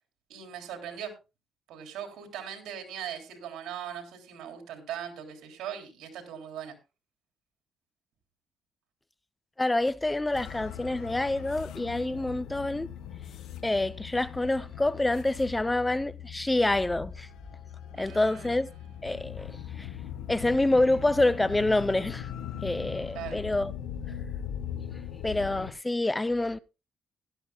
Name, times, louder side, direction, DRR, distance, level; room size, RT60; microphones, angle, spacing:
voice 1, 0.3-1.1 1.7-6.7 17.9-18.5 23.1-23.4, right 9 dB, 85° right, 3.2 m, -40 dB
voice 2, 9.6-12.9 13.6-17.3 18.0-18.7 19.0-19.9 20.3-22.3 22.6-23.7 25.2-26.6, left 2 dB, 15° left, 0.5 m, -27 dB
sound 1, 10.3-25.7, left 9 dB, 85° left, 1.0 m, -40 dB
16.0 x 12.0 x 2.3 m
cardioid pair, 90°, 0 cm